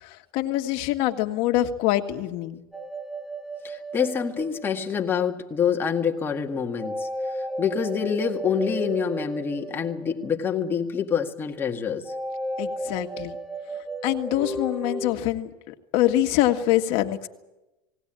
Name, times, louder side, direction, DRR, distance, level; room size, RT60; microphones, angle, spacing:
voice 1, 0.0-2.6 12.6-13.4 14.0-17.3, left 14 dB, 55° left, 1.7 m, -25 dB
sound 1, 2.7-5.4 6.8-10.7 12.0-15.1, right 1 dB, ahead, 0.9 m, -34 dB
voice 2, 3.6-12.1, left 7 dB, 20° left, 1.9 m, -26 dB
19.0 x 18.5 x 8.9 m
supercardioid pair, 140°, 12 cm